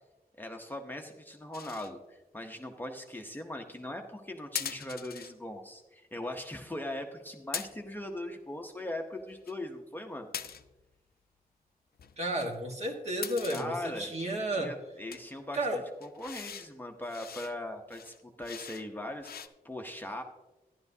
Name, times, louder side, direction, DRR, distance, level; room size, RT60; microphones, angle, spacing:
voice 1, 0.3-10.3 13.5-14.1 14.6-19.3 19.6-20.2, left 1 dB, 10° left, 2 dB, 0.7 m, -40 dB
sound 1, 1.5-1.9 4.5-5.3 7.5-8.0 9.2-9.5 10.3-10.8 12.0-13.7 14.2-14.5 15.1-15.2 16.0-16.7 17.0-17.6 17.9-18.9 19.2-19.5, left 7 dB, 80° left, 0.5 m, -41 dB
voice 2, 12.2-14.7 15.5-15.8, right 1 dB, 45° right, 2 dB, 1.4 m, -32 dB
13.0 x 10.5 x 2.7 m, 1.1 s
wide cardioid pair, 145°, 16 cm